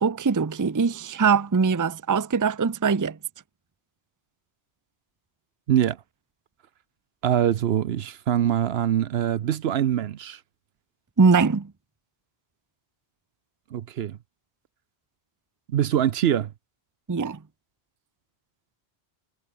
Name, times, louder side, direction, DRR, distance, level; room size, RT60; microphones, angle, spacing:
voice 1, 0.0-3.2 11.2-11.7 17.1-17.4, right 5 dB, 20° right, 0.6 m, -22 dB
voice 2, 7.2-10.4 13.7-14.2 15.7-16.5, right 10 dB, 70° right, 0.9 m, -23 dB
omnidirectional pair, 1.1 m